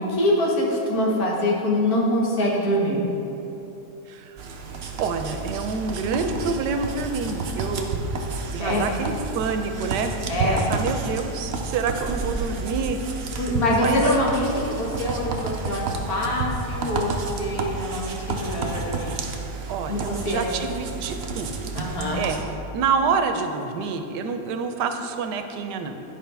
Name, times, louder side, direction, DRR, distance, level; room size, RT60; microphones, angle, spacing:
voice 1, 0.0-3.1 8.6-8.8 10.3-10.7 13.4-19.1 19.9-20.4 21.7-22.2, left 1 dB, 65° left, -3 dB, 1.6 m, -24 dB
voice 2, 4.1-4.4 5.0-8.0 8.5-10.2 10.4-13.0 13.8-14.0 19.7-21.8 22.1-26.0, right 5 dB, 90° right, 7 dB, 1.2 m, -27 dB
sound 1, 4.4-22.4, right 3 dB, 65° right, 0.6 m, -30 dB
10.5 x 5.0 x 3.4 m, 3.0 s
omnidirectional pair, 1.8 m